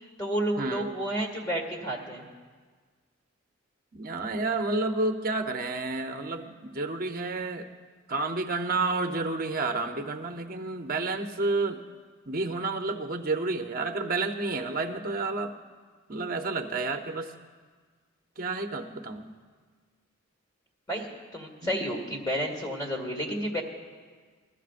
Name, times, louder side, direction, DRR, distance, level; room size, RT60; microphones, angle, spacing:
voice 1, 0.2-2.2 20.9-23.6, equal, 20° left, 0 dB, 2.0 m, -31 dB
voice 2, 3.9-7.7 8.1-11.8 12.3-15.5 16.1-17.3 18.4-19.3 21.6-21.8, right 3 dB, 40° right, 5 dB, 0.8 m, -30 dB
21.5 x 13.5 x 2.5 m, 1.5 s
head